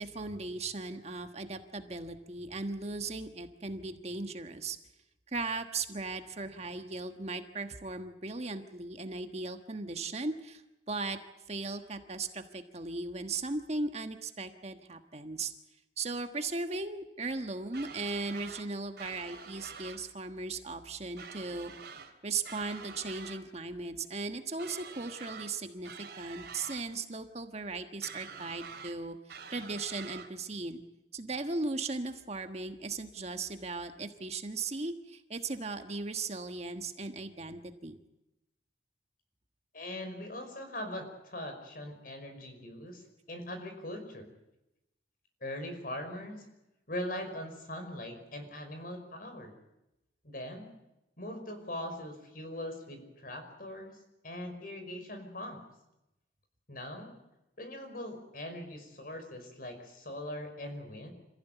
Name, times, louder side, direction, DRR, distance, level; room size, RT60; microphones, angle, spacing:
voice 1, 0.0-4.8 5.3-10.6 10.9-11.2 11.5-15.5 16.0-21.7 22.2-30.8 31.1-38.0, right 3 dB, 35° right, 7 dB, 1.4 m, -37 dB
sound 1, 17.7-18.7 19.0-20.0 21.2-22.1 22.4-23.4 24.6-25.5 25.8-26.8 28.0-29.0 29.3-30.3, right 5 dB, 60° right, 3.5 m, -46 dB
voice 2, 39.7-44.3 45.4-46.5 46.9-49.5 50.2-50.7 51.2-54.0 54.2-55.6 56.7-57.1 57.6-61.1, left 1 dB, 50° left, 6 dB, 5.4 m, -41 dB
26.5 x 15.5 x 9.3 m, 0.91 s
head